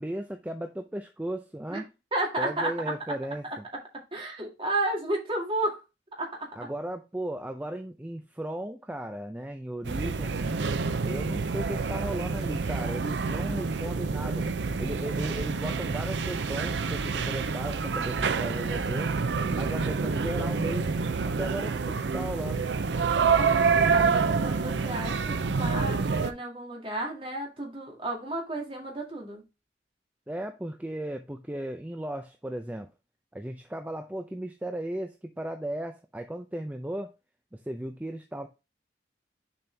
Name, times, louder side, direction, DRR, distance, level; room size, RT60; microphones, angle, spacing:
voice 1, 0.0-1.9 2.4-3.6 6.6-10.5 11.0-14.5 14.8-19.1 19.5-21.0 21.4-22.7 30.3-32.9 33.3-37.1 37.5-38.5, right 1 dB, 10° right, 0.5 m, -36 dB
voice 2, 2.1-2.7 4.1-5.8 6.2-6.5 19.4-19.7 23.3-29.4, right 2 dB, 30° right, 2.0 m, -32 dB
sound 1, 9.8-26.3, right 5 dB, 75° right, 0.5 m, -27 dB
7.0 x 4.3 x 3.3 m
head